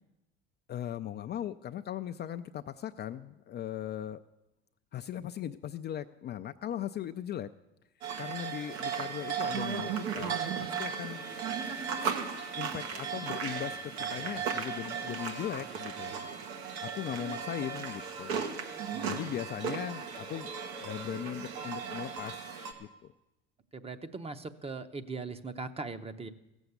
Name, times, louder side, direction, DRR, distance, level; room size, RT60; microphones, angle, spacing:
voice 1, 0.7-4.2 4.9-7.5 8.2-11.2 12.6-16.1 16.8-18.5 19.1-20.5 20.8-23.1, left 10 dB, 35° left, 9 dB, 0.4 m, -39 dB
sound 1, 8.0-22.7, right 6 dB, 80° right, 1.6 m, -36 dB
voice 2, 14.0-14.4 16.1-16.2 18.9-19.3 23.7-26.3, right 3 dB, 20° right, 10 dB, 0.8 m, -41 dB
15.5 x 7.1 x 8.0 m, 0.96 s
supercardioid pair, 95°, 31 cm